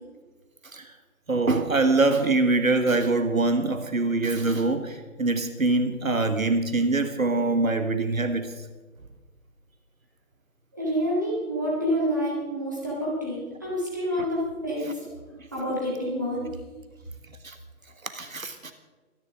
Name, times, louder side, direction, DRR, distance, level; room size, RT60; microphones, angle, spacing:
voice 1, 1.3-8.5 17.4-17.5 18.1-18.7, right 3 dB, 65° right, 8 dB, 1.5 m, -24 dB
voice 2, 10.7-15.1 15.5-16.5, equal, 10° right, -6 dB, 1.9 m, -28 dB
24.0 x 10.5 x 3.6 m, 1.3 s
figure-of-eight pair, 180°, 44 cm